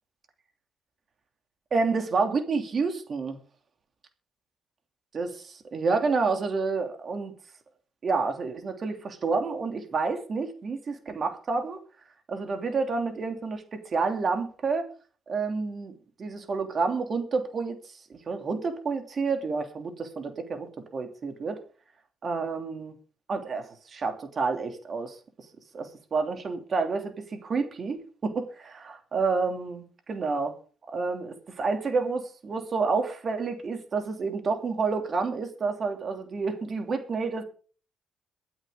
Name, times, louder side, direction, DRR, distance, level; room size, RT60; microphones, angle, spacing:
voice 1, 1.7-3.4 5.1-5.3 5.7-7.3 8.0-11.8 12.3-14.9 15.3-15.9 16.2-17.8 18.1-21.6 22.2-22.9 23.3-25.2 25.7-30.5 30.9-37.4, right 4 dB, 45° right, 5 dB, 2.8 m, -29 dB
23.0 x 8.0 x 3.8 m, 0.40 s
cardioid pair, 90°, 0 cm